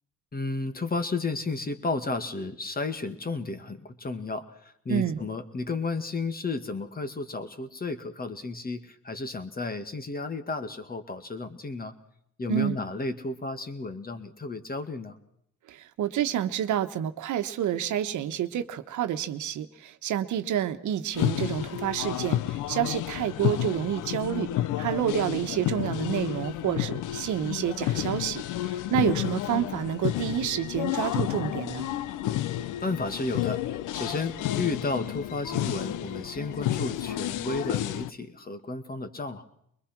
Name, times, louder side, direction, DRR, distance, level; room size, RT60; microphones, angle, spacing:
voice 1, 0.3-11.9 12.4-15.2 32.8-39.4, left 3 dB, 30° left, 9 dB, 2.1 m, -33 dB
voice 2, 4.9-5.2 12.5-12.8 15.7-24.5 24.8-31.9, right 10 dB, 75° right, 9 dB, 1.3 m, -29 dB
sound 1, 21.1-38.1, left 14 dB, 90° left, 0.7 m, -31 dB
23.0 x 21.0 x 6.0 m, 0.70 s
cardioid pair, 90°, 30 cm